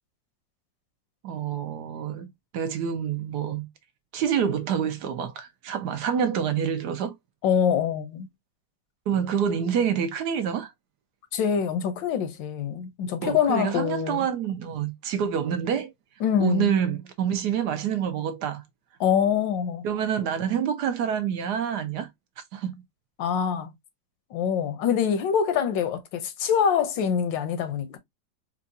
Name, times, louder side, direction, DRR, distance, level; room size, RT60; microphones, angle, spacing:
voice 1, 1.2-2.3 2.5-3.7 4.1-7.2 9.1-10.7 13.2-15.9 16.4-18.6 19.8-22.1 22.5-22.7, right 8 dB, 70° right, 1.1 m, -27 dB
voice 2, 7.4-8.3 11.3-14.2 16.2-16.8 19.0-19.9 23.2-23.7 24.3-28.0, left 7 dB, 80° left, 1.4 m, -25 dB
4.6 x 2.4 x 2.6 m
omnidirectional pair, 2.0 m